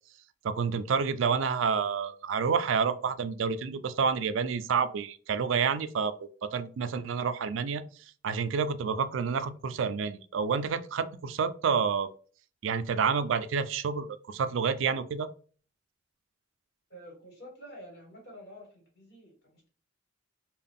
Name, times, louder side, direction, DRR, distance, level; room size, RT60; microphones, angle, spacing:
voice 1, 0.4-6.1 6.4-7.8 8.2-12.1 12.6-15.3, right 6 dB, 75° right, 0.4 m, -29 dB
voice 2, 16.9-19.7, equal, 55° left, 1.7 m, -49 dB
3.5 x 2.3 x 3.7 m
head